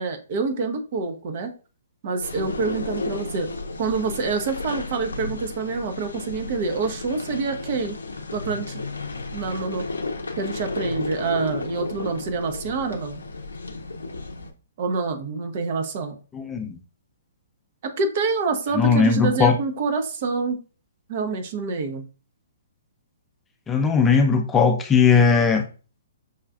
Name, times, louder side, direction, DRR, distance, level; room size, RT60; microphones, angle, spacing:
voice 1, 0.0-1.5 2.0-3.5 3.8-8.0 8.3-8.8 9.3-9.8 10.4-13.2 14.8-16.1 17.8-20.6 21.1-22.0, right 4 dB, 45° right, 7 dB, 0.6 m, -27 dB
sound 1, 2.2-14.5, left 3 dB, 80° left, 0.5 m, -33 dB
voice 2, 16.3-16.8 18.7-19.6 23.7-25.6, left 5 dB, 15° left, 4 dB, 0.5 m, -18 dB
5.6 x 2.4 x 2.3 m, 0.35 s
figure-of-eight pair, 125°, 0 cm